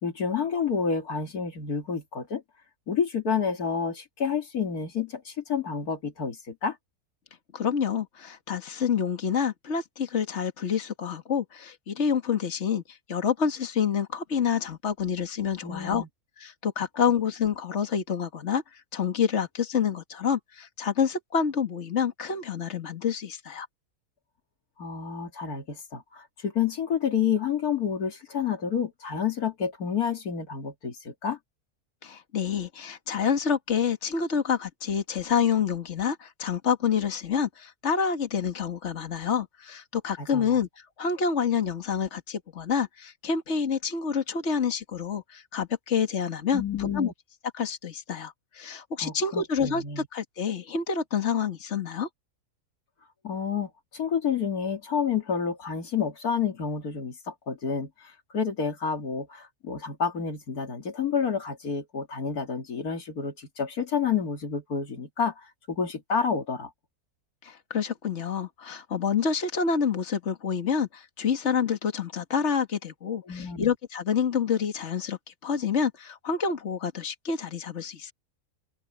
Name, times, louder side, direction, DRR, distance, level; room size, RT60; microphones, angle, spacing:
voice 1, 0.0-2.4 2.9-6.8 15.6-16.1 24.8-31.4 40.2-40.6 46.5-47.1 49.0-50.1 53.2-66.7 73.3-73.7, left 6 dB, 80° left, 2.7 m, -29 dB
voice 2, 7.5-16.0 16.4-23.7 32.0-40.7 41.0-47.1 47.5-52.1 67.4-78.1, left 6 dB, 50° left, 2.0 m, -28 dB
open air
omnidirectional pair, 1.6 m